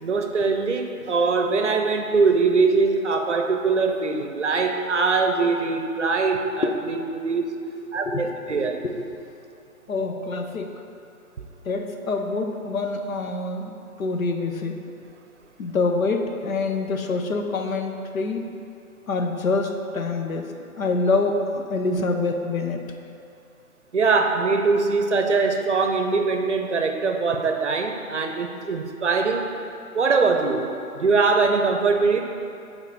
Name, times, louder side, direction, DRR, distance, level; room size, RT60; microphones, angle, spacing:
voice 1, 0.0-7.4 7.9-8.8 23.9-29.5 29.9-32.2, right 4 dB, 55° right, 5 dB, 0.7 m, -22 dB
voice 2, 9.9-10.7 11.6-13.7 14.0-14.8 15.6-18.5 19.1-22.8, left 3 dB, 65° left, 4 dB, 0.8 m, -26 dB
7.0 x 4.0 x 5.7 m, 2.6 s
hypercardioid pair, 165°, 44 cm